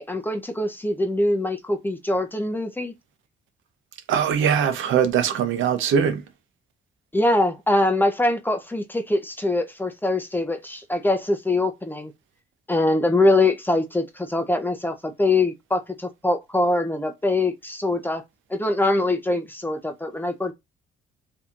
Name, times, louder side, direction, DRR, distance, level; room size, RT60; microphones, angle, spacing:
voice 1, 0.0-2.9 7.1-12.1 12.7-18.2 18.5-20.5, left 2 dB, 10° left, 0.6 m, -23 dB
voice 2, 4.1-6.2, right 8 dB, 75° right, 0.8 m, -21 dB
4.1 x 2.7 x 2.4 m
cardioid pair, 90°, 20 cm